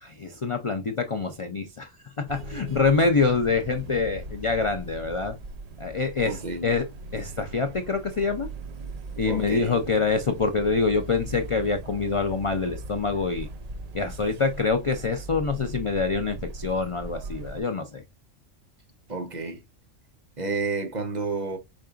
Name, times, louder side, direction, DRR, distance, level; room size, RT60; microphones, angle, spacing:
voice 1, 0.0-5.4 5.8-6.9 7.1-8.5 9.2-13.5 13.9-18.0, left 4 dB, 55° left, 0.3 m, -25 dB
sound 1, 2.3-17.6, right 2 dB, 75° right, 0.3 m, -39 dB
voice 2, 6.2-6.7 9.2-9.8 19.1-19.6 20.4-21.6, right 3 dB, 40° right, 0.9 m, -30 dB
5.2 x 3.8 x 2.4 m
omnidirectional pair, 1.3 m